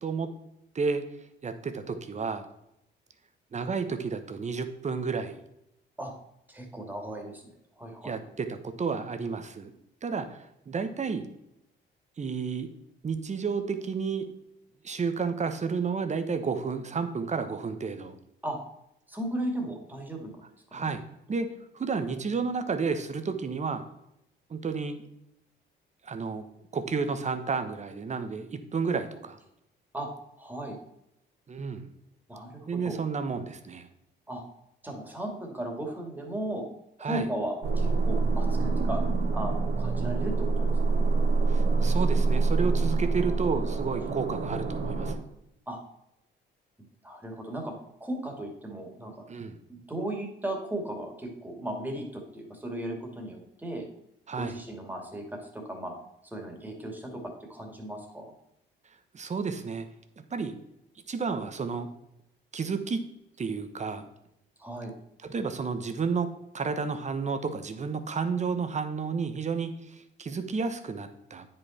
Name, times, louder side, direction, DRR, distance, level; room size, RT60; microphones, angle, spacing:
voice 1, 1.4-2.4 3.5-5.4 8.0-9.7 10.0-11.3 12.2-12.7 13.0-14.3 14.8-18.2 20.7-21.0 21.3-21.5 21.7-23.8 24.5-25.0 26.0-26.4 26.7-29.4 31.5-31.9 32.7-33.9 37.0-37.3 41.5-45.2 49.3-49.6 54.3-54.5 59.1-59.9 60.3-60.5 61.1-61.9 62.5-63.0 63.4-64.0 65.2-66.3 66.5-71.5, right 5 dB, 35° right, 9 dB, 1.1 m, -31 dB
voice 2, 6.5-7.4 7.8-8.2 18.4-18.6 19.1-20.4 20.7-20.9 29.9-30.1 30.4-30.8 32.3-33.0 34.3-34.4 34.8-36.6 37.0-39.0 39.3-41.1 45.7-45.8 47.0-47.7 48.0-49.2 49.7-53.9 54.3-55.2 55.5-55.9 56.2-57.2 57.5-58.3 64.6-64.9, right 1 dB, 10° right, 1 dB, 2.4 m, -36 dB
sound 1, 37.6-45.1, right 3 dB, 55° right, 1.7 m, -26 dB
9.2 x 5.5 x 4.3 m, 0.82 s
cardioid pair, 90°, 20 cm